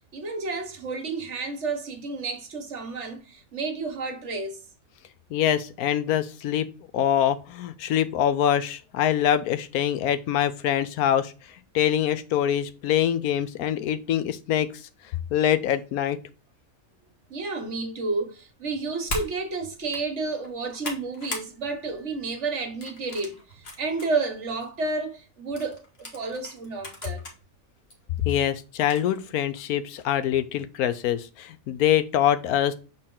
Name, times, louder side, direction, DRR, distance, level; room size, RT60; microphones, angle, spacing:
voice 1, 0.1-4.6 17.3-27.2, right 3 dB, 55° right, 1.5 m, -31 dB
voice 2, 5.3-6.7 6.9-11.3 11.7-14.8 15.3-16.2 28.2-32.7, left 10 dB, 90° left, 1.2 m, -24 dB
sound 1, 19.1-19.3 19.8-20.0 20.4-21.5 21.9-22.2 22.8-24.1 24.6-24.7 25.6-27.3 27.9-28.0 28.8-29.2, left 1 dB, 45° left, 1.6 m, -37 dB
6.4 x 3.9 x 3.7 m
omnidirectional pair, 1.5 m